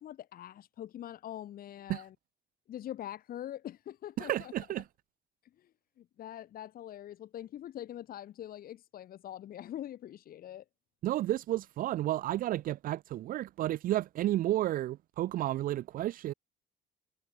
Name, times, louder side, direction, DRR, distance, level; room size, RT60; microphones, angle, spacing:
voice 1, 0.0-2.1 2.7-4.5 6.0-10.6, left 11 dB, 60° left, 2.4 m, -43 dB
voice 2, 4.2-4.9 11.0-16.3, right 14 dB, 55° right, 0.5 m, -32 dB
cardioid pair, 110°, 17 cm